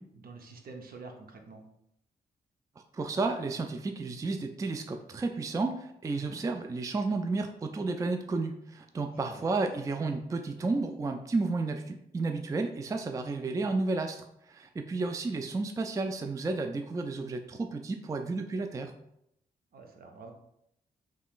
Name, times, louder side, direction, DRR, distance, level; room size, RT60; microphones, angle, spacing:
voice 1, 0.0-1.6 6.1-6.4 9.1-9.5 19.7-20.3, right 3 dB, 60° right, 3 dB, 0.7 m, -47 dB
voice 2, 2.9-18.9, right 3 dB, 20° right, 5 dB, 0.3 m, -32 dB
3.5 x 3.1 x 2.4 m, 0.77 s
supercardioid pair, 45°, 17 cm